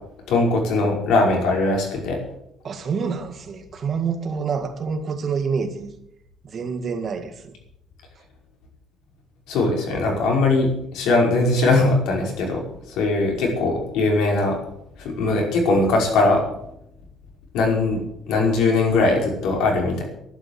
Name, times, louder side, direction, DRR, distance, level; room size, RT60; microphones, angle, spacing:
voice 1, 0.3-2.2 9.5-14.6 15.0-16.4 17.5-20.0, left 2 dB, 90° left, 5.4 m, -20 dB
voice 2, 2.6-5.9 6.4-7.5, right 5 dB, 35° right, 1.9 m, -27 dB
12.5 x 11.5 x 8.2 m
cardioid pair, 155°, 0 cm